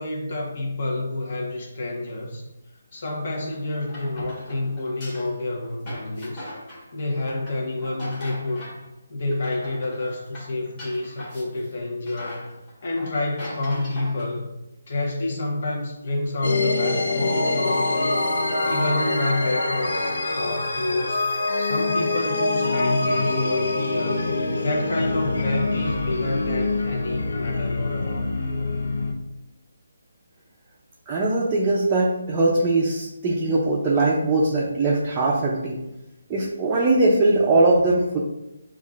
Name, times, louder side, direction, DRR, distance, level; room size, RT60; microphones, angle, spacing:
voice 1, 0.0-2.5 2.9-6.5 6.9-8.7 9.1-12.5 12.8-14.5 14.9-24.3 24.6-28.3, left 2 dB, 45° left, -1 dB, 1.0 m, -28 dB
sound 1, 3.3-8.9 9.2-11.7 12.1-14.4, left 1 dB, 20° left, 1.4 m, -40 dB
sound 2, 16.4-29.1, left 2 dB, 80° left, 0.6 m, -25 dB
voice 2, 31.1-35.8 36.3-38.2, right 2 dB, 15° right, -5 dB, 0.4 m, -21 dB
7.1 x 2.4 x 2.4 m, 0.92 s
hypercardioid pair, 170°, 0 cm